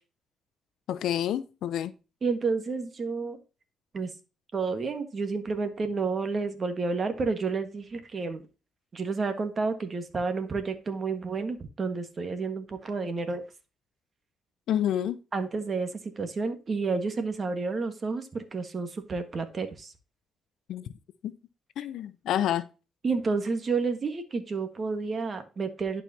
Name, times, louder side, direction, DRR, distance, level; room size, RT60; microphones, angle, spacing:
voice 1, 0.9-1.9 14.7-15.2 20.7-20.8 21.2-21.3 21.8-22.6, left 10 dB, 75° left, 0.7 m, -28 dB
voice 2, 2.2-3.4 3.9-4.1 4.5-8.4 8.9-13.4 15.3-19.9 23.0-26.0, right 4 dB, 40° right, 1.6 m, -30 dB
11.5 x 4.9 x 2.8 m
cardioid pair, 90°, 0 cm